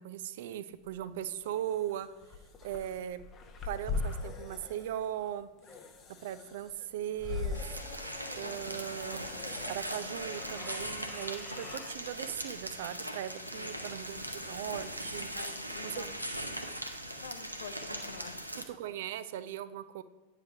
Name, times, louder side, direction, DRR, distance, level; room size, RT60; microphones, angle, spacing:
voice 1, 0.0-2.1 2.6-3.2 3.6-5.5 6.2-7.6 8.4-9.4 9.7-15.3 15.8-16.0 18.6-20.0, right 11 dB, 55° right, 14 dB, 0.4 m, -38 dB
sound 1, 0.9-11.9, left 4 dB, 25° left, 0.8 m, -42 dB
sound 2, 7.5-18.6, right 1 dB, 85° right, 0.7 m, -40 dB
voice 2, 8.6-9.2 13.5-13.8 15.3-16.2 17.2-18.5, left 7 dB, 60° left, 9 dB, 0.6 m, -48 dB
9.1 x 3.3 x 5.5 m, 1.2 s
figure-of-eight pair, 90°, 0 cm